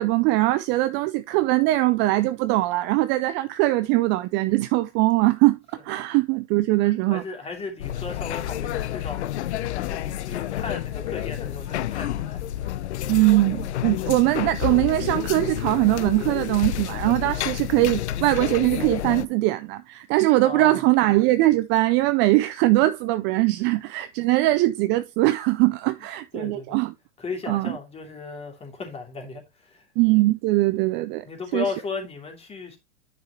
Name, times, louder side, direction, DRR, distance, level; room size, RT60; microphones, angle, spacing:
voice 1, 0.0-5.6 5.8-7.2 13.1-26.9 27.5-27.7 30.0-31.2 31.5-31.6, right 18 dB, 35° right, 0.4 m, -21 dB
voice 2, 7.1-9.2 9.7-12.4 20.4-20.8 26.3-26.8 27.2-29.9 31.2-32.8, left 4 dB, 15° left, 2.8 m, -35 dB
sound 1, 7.8-19.3, left 13 dB, 70° left, 0.7 m, -30 dB
9.4 x 5.9 x 3.0 m
hypercardioid pair, 120°, 35 cm